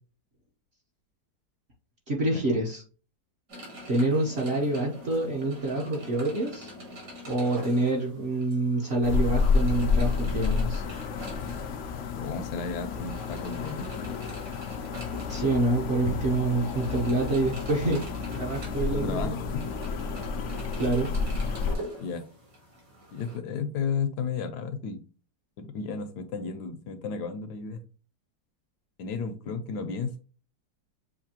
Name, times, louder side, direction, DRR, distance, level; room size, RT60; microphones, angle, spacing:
voice 1, 2.1-2.8 3.9-6.7 7.2-10.8 15.3-18.0 18.3-19.4 20.7-21.1, right 2 dB, 45° right, -2 dB, 0.9 m, -27 dB
sound 1, 3.5-23.4, equal, 65° right, 2.4 m, -44 dB
sound 2, 9.0-21.8, left 4 dB, 90° left, 0.6 m, -30 dB
voice 2, 12.1-13.9 17.8-18.0 18.9-19.5 22.0-22.3 23.1-25.0 25.6-27.8 29.0-30.2, left 5 dB, 70° left, 8 dB, 1.1 m, -33 dB
6.5 x 2.6 x 2.8 m, 0.36 s
omnidirectional pair, 2.0 m